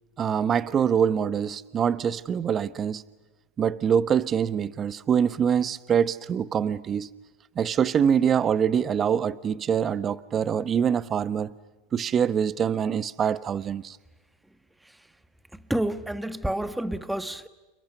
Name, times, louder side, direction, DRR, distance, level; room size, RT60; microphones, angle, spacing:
voice 1, 0.2-3.0 3.6-7.1 7.6-11.5 11.9-14.0, right 8 dB, 30° right, 1.0 m, -24 dB
voice 2, 15.7-17.5, right 1 dB, 5° right, 1.3 m, -29 dB
29.5 x 28.5 x 6.8 m
supercardioid pair, 115°, 0 cm